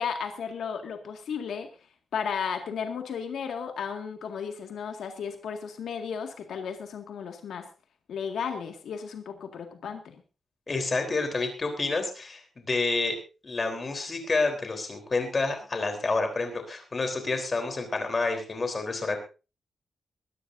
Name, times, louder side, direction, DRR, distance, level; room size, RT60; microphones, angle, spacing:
voice 1, 0.0-1.7 2.1-7.7 8.1-10.2, left 6 dB, 85° left, 5 dB, 1.9 m, -34 dB
voice 2, 10.7-13.2 13.4-19.2, left 3 dB, 30° left, 5 dB, 3.6 m, -29 dB
22.5 x 13.5 x 2.7 m, 0.32 s
wide cardioid pair, 160°, 0 cm